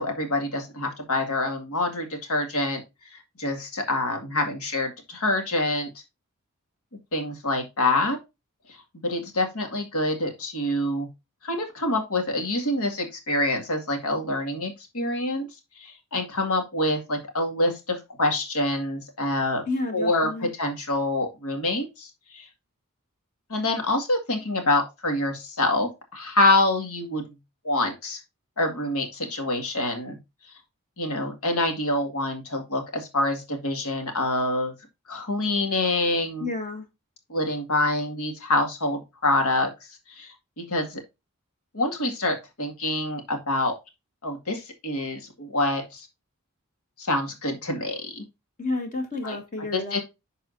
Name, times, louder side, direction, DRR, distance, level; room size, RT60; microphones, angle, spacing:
voice 1, 0.0-2.8 3.4-5.9 7.1-8.2 9.0-11.1 11.4-15.5 15.8-19.6 19.9-22.5 23.5-27.2 27.6-28.2 28.6-30.2 31.0-34.7 35.1-36.5 37.3-39.7 40.2-41.0 41.7-43.7 44.2-46.1 47.0-48.2 49.2-49.4 49.7-50.0, left 2 dB, 85° left, 2.0 m, -26 dB
voice 2, 19.7-20.5 36.4-36.9 48.6-50.0, left 2 dB, 35° left, 1.5 m, -30 dB
11.5 x 4.2 x 2.6 m
head